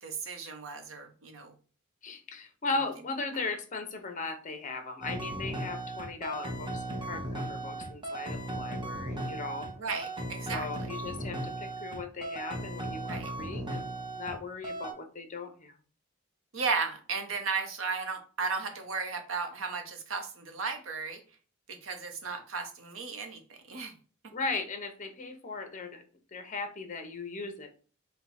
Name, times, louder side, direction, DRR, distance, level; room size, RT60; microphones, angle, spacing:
voice 1, 0.0-1.5 9.8-10.7 13.1-13.3 16.5-21.2 21.7-23.4 23.7-23.9, right 4 dB, 75° right, 6 dB, 0.8 m, -35 dB
voice 2, 2.0-9.7 10.5-15.7 24.3-26.0 26.3-27.8, left 3 dB, 40° left, 6 dB, 0.7 m, -37 dB
sound 1, 5.0-14.4 14.6-14.9, right 1 dB, 25° right, 0.8 m, -37 dB
4.4 x 2.3 x 4.1 m, 0.39 s
head